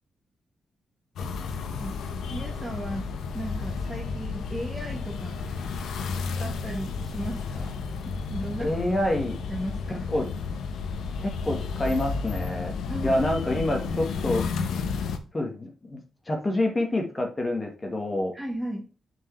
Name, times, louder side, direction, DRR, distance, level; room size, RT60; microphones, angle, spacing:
sound 1, 1.2-15.2, left 5 dB, 85° left, 0.9 m, -32 dB
voice 1, 2.3-5.4 6.0-6.1 6.4-7.8 8.0-8.7 9.5-10.3 12.9-13.2 13.7-13.8 18.3-18.8, equal, 10° right, 0 dB, 1.2 m, -36 dB
voice 2, 8.6-9.4 10.1-10.3 11.2-12.7 13.0-14.4 15.3-16.0 16.3-18.3, left 1 dB, 20° left, 3 dB, 1.3 m, -27 dB
7.4 x 4.6 x 3.1 m, 0.36 s
wide cardioid pair, 160°, 0 cm